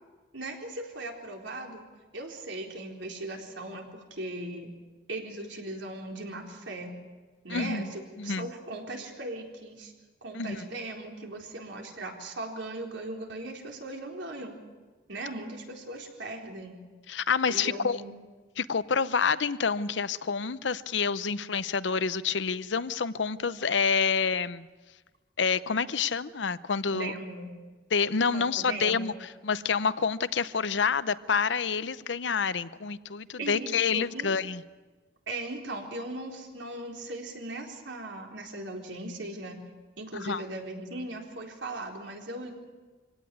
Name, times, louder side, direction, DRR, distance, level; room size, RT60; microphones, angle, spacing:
voice 1, 0.3-1.8 2.1-4.7 5.1-6.9 7.4-9.9 10.2-14.5 15.1-16.8 17.5-18.1 26.9-27.5 28.3-29.1 33.4-34.3 35.3-39.6 40.0-42.5, right 2 dB, 85° right, 2 dB, 4.1 m, -38 dB
voice 2, 7.5-7.9 8.2-8.5 10.3-10.7 17.1-18.0 18.6-24.7 25.4-27.1 27.9-34.6 40.2-40.4, left 5 dB, 80° left, 16 dB, 0.7 m, -28 dB
25.0 x 17.5 x 9.4 m, 1.3 s
head